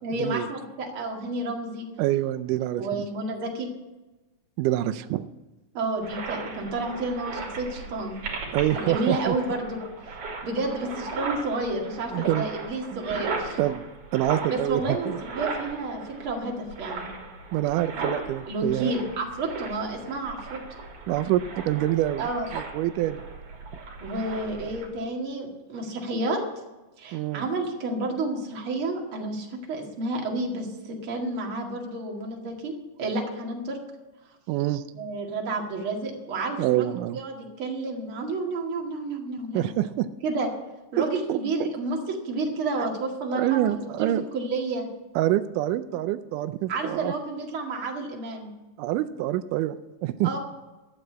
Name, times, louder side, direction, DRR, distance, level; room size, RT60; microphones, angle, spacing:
voice 1, 0.0-1.9 2.8-3.7 5.7-8.2 8.7-9.8 10.4-13.6 14.5-15.1 15.3-17.1 18.5-20.6 22.2-22.5 24.0-26.4 27.0-32.7 33.0-33.8 34.9-39.7 40.2-40.5 40.9-44.9 46.7-48.5 50.2-50.4, right 2 dB, 45° right, 1 dB, 2.6 m, -30 dB
voice 2, 2.0-3.1 4.6-5.3 8.5-9.4 12.1-12.5 12.9-13.0 13.6-13.9 14.1-15.2 17.5-18.9 21.1-22.3 22.5-23.2 27.1-27.4 34.5-34.8 36.6-37.2 39.5-40.1 41.0-41.7 42.8-42.9 43.3-44.2 45.2-47.1 48.8-50.4, right 14 dB, 90° right, 10 dB, 2.1 m, -26 dB
sound 1, 6.0-24.9, right 4 dB, 70° right, 3.9 m, -37 dB
12.5 x 8.0 x 8.4 m, 1.1 s
omnidirectional pair, 3.6 m